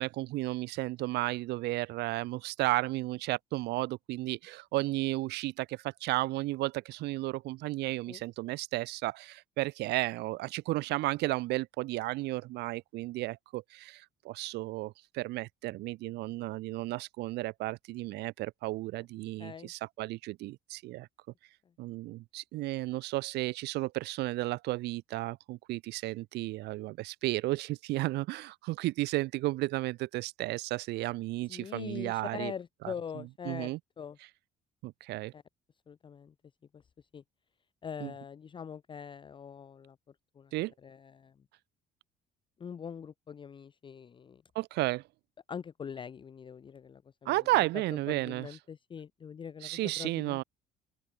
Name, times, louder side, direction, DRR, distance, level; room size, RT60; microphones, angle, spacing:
voice 1, 0.0-21.1 21.8-32.5 32.8-33.8 34.8-35.3 38.0-38.1 40.5-40.7 44.5-45.0 47.2-48.5 49.6-50.4, right 19 dB, 85° right, 1.0 m, -33 dB
voice 2, 19.4-19.7 31.5-33.7 34.0-34.2 35.3-35.4 35.9-36.3 37.1-37.2 37.8-40.0 40.4-40.5 40.8-41.3 42.6-44.4 45.5-47.7 48.1-50.4, left 7 dB, 30° left, 0.5 m, -43 dB
open air
cardioid pair, 110°, 17 cm